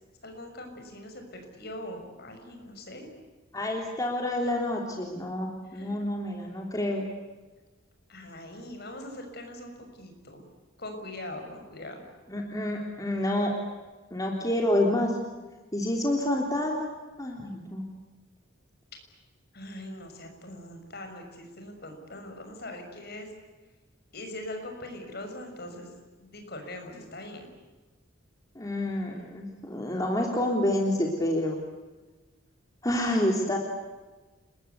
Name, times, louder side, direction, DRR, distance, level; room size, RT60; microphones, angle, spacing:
voice 1, 0.2-3.1 5.6-6.0 8.1-10.5 10.8-12.0 19.5-23.3 24.1-25.9 26.2-27.5, left 1 dB, 50° left, 5 dB, 6.6 m, -42 dB
voice 2, 3.5-7.1 12.3-13.5 14.1-15.2 15.7-16.9 17.2-17.8 28.5-31.6 32.8-33.6, left 1 dB, 15° left, 0 dB, 3.5 m, -28 dB
30.0 x 22.0 x 8.3 m, 1.2 s
head